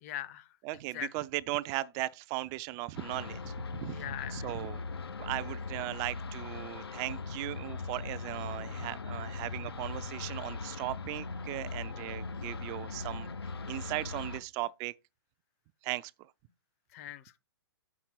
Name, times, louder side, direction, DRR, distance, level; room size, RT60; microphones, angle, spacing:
voice 1, 0.0-0.5 0.9-1.1 3.9-4.5 11.9-12.0 16.9-17.4, left 12 dB, 40° left, 0.7 m, -41 dB
voice 2, 0.6-4.0 4.3-4.8 5.2-13.3 13.7-14.9 15.8-16.1, right 18 dB, 25° right, 0.3 m, -37 dB
sound 1, 2.9-14.4, left 4 dB, 85° left, 0.7 m, -40 dB
8.2 x 6.0 x 4.5 m
hypercardioid pair, 130°, 13 cm